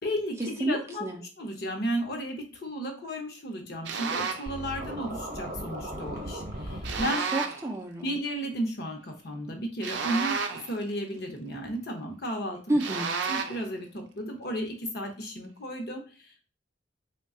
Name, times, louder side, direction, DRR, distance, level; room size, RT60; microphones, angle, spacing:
voice 1, 0.0-1.1 1.4-7.2 8.0-12.8 13.3-16.4, equal, 55° left, 3 dB, 0.8 m, -34 dB
voice 2, 0.6-1.2 7.3-8.1 12.7-13.1, right 1 dB, 15° right, 2 dB, 0.4 m, -29 dB
sound 1, 3.8-4.5 6.8-7.7 9.8-10.8 12.8-13.7, right 5 dB, 75° right, 0.4 m, -31 dB
Scratching (performance technique), 4.5-7.0, right 1 dB, 50° right, 0.8 m, -37 dB
3.1 x 2.2 x 3.6 m, 0.36 s
head